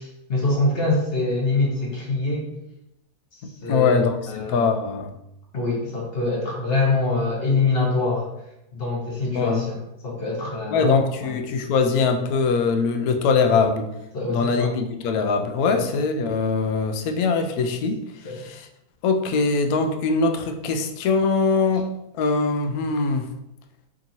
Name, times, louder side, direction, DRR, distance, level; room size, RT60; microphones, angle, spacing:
voice 1, 0.0-2.5 3.6-4.6 5.5-8.3 8.7-9.8 10.0-11.3 14.1-14.7 15.7-15.8 18.2-18.4, left 3 dB, 40° left, -4 dB, 1.0 m, -24 dB
voice 2, 3.7-5.1 9.3-9.7 10.7-13.9 14.3-18.0 18.3-18.7 19.0-21.9 22.1-23.3, left 4 dB, 85° left, 5 dB, 0.8 m, -22 dB
5.1 x 2.8 x 2.7 m, 0.84 s
omnidirectional pair, 2.1 m